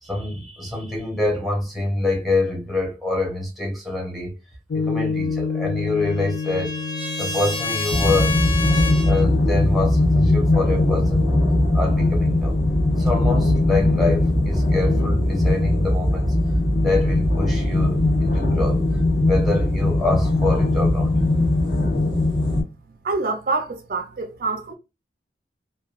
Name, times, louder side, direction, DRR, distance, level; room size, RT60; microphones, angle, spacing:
voice 1, 0.0-4.3 4.7-6.8 7.2-8.4 8.7-11.3 11.7-12.6 12.9-16.3 16.8-18.8 19.3-21.1, left 2 dB, ahead, 0.8 m, -26 dB
Piano, 4.7-11.4, left 5 dB, 80° left, 0.4 m, -30 dB
Trumpet, 5.3-9.2, left 2 dB, 25° left, 1.2 m, -30 dB
sound 1, 7.9-22.6, left 1 dB, 50° left, 1.3 m, -19 dB
voice 2, 23.0-24.7, right 3 dB, 50° right, 0.4 m, -26 dB
3.0 x 2.3 x 2.4 m
head